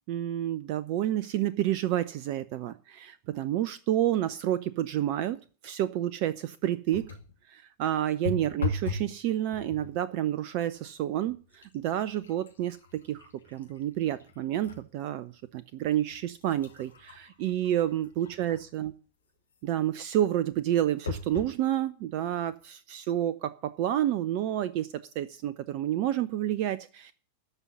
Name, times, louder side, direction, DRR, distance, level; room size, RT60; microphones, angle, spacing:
voice 1, 0.1-7.1 7.5-18.9 19.6-27.1, right 12 dB, 45° right, 16 dB, 0.7 m, -29 dB
sound 1, 6.9-7.4 8.2-9.1 9.5-10.0 10.7-10.9 11.3-14.8 15.3-15.4 16.1-18.8 21.1-21.6 22.3-22.4 22.6-22.7, left 4 dB, 75° left, 2.4 m, -38 dB
14.0 x 5.6 x 9.7 m, 0.38 s
figure-of-eight pair, 90°, 0 cm